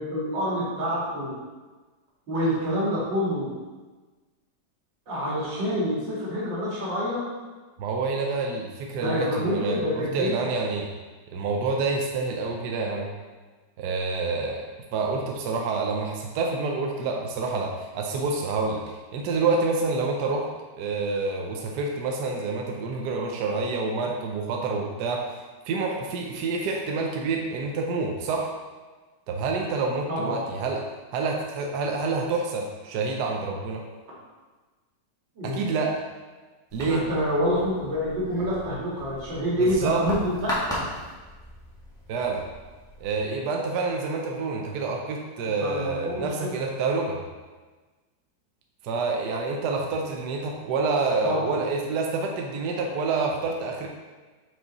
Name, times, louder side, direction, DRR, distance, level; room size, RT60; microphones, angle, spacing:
voice 1, 0.0-1.3 2.3-3.5 5.1-7.2 8.9-10.5 30.1-30.4 35.4-35.6 36.8-40.9 45.6-46.6 51.2-51.6, equal, 90° right, -6 dB, 2.6 m, -27 dB
voice 2, 7.8-10.9 11.3-13.1 13.8-14.6 14.9-20.5 20.8-28.5 29.3-33.8 35.4-36.1 36.7-37.0 39.6-40.0 42.1-42.5 43.0-47.2 48.8-53.9, right 3 dB, 70° right, 1 dB, 1.2 m, -28 dB
sound 1, 36.7-43.2, equal, ahead, 1.7 m, -37 dB
5.7 x 5.2 x 4.0 m, 1.3 s
omnidirectional pair, 1.9 m